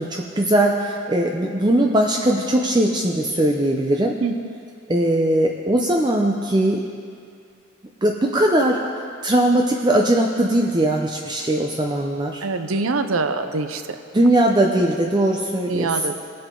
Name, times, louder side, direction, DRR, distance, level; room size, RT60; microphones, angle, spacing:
voice 1, 0.0-4.2 4.9-6.8 8.0-8.8 9.2-12.4 14.1-15.9, right 1 dB, 20° right, 1 dB, 0.6 m, -20 dB
voice 2, 4.2-4.5 12.4-14.0 15.7-16.2, right 3 dB, 80° right, 8 dB, 0.7 m, -24 dB
20.5 x 7.8 x 3.8 m, 2.3 s
head